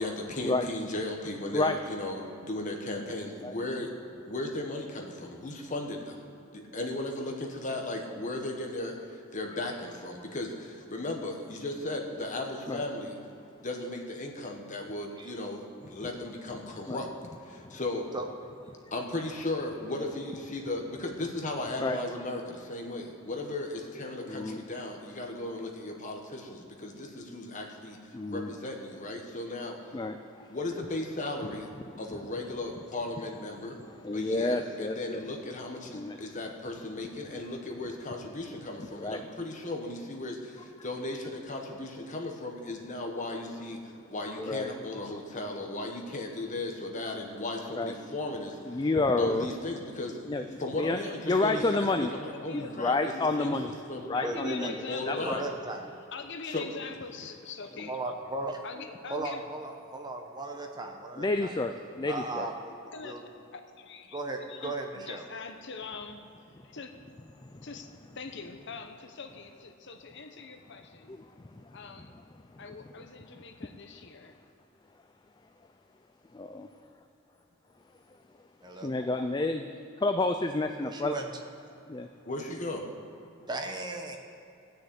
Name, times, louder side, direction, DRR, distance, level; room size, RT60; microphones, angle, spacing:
voice 1, 0.0-3.9 4.3-6.2 6.5-13.1 13.6-17.1 17.5-18.1 18.9-29.8 30.5-31.7 32.0-33.8 34.1-43.8 44.1-48.8 49.2-50.2 50.6-53.5 53.9-54.1 54.9-55.5 56.5-56.7 82.2-82.8, left 2 dB, 35° left, 2 dB, 1.4 m, -36 dB
voice 2, 24.3-24.6 28.1-28.5 29.9-30.5 32.1-32.2 34.0-35.2 35.9-36.2 39.0-39.2 44.2-45.1 47.8-47.9 48.7-49.5 50.3-51.0 51.2-52.1 52.5-53.7 54.0-54.8 55.1-55.4 61.2-62.5 67.4-67.7 71.1-71.2 71.5-71.7 76.3-76.7 78.8-79.7 80.0-81.1 81.9-82.1, left 2 dB, 20° left, 7 dB, 0.4 m, -30 dB
voice 3, 53.1-53.6 54.1-55.3 56.1-58.0 58.6-59.4 62.9-63.2 63.5-67.0 67.6-71.2 71.7-72.2 72.6-74.4, left 5 dB, 55° left, 6 dB, 0.9 m, -43 dB
voice 4, 54.2-54.9 55.2-55.9 57.9-58.6 59.1-61.5 62.1-63.2 64.1-65.2 78.6-78.9 80.8-81.3 83.5-84.2, right 2 dB, 20° right, 3 dB, 1.0 m, -36 dB
15.5 x 6.5 x 8.4 m, 2.8 s
head